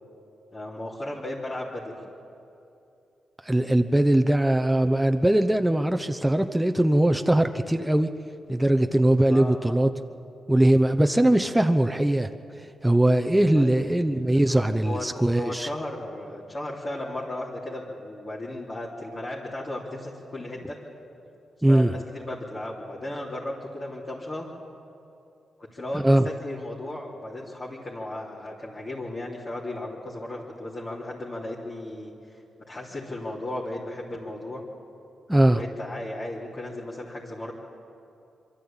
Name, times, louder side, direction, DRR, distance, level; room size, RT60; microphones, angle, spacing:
voice 1, 0.5-1.9 9.3-9.6 13.4-14.2 14.5-15.1 15.3-20.8 21.7-24.5 25.6-32.1 32.7-34.6 35.5-37.5, left 1 dB, 35° left, -6 dB, 3.4 m, -35 dB
voice 2, 3.4-8.1 8.5-9.9 10.5-12.3 12.8-15.7 21.6-21.9 25.9-26.3 35.3-35.6, right 1 dB, 10° right, 6 dB, 0.9 m, -21 dB
24.0 x 12.5 x 8.9 m, 2.7 s
supercardioid pair, 55°, 0 cm